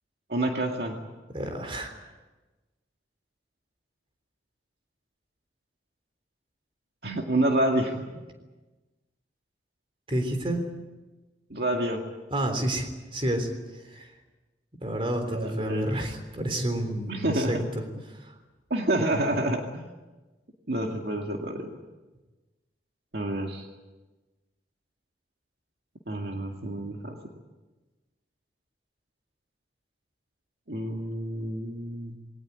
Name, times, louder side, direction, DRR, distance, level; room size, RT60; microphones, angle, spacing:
voice 1, 0.3-1.0 7.0-8.0 11.5-12.0 15.2-15.9 17.1-17.7 18.7-19.9 20.7-21.7 23.1-23.7 26.1-27.2 30.7-32.2, right 1 dB, 60° right, 2 dB, 2.1 m, -28 dB
voice 2, 1.3-1.9 10.1-10.6 12.3-13.5 13.8-14.1 14.8-17.6 18.1-18.3, right 1 dB, 30° right, 6 dB, 3.5 m, -29 dB
21.5 x 18.5 x 9.5 m, 1.2 s
head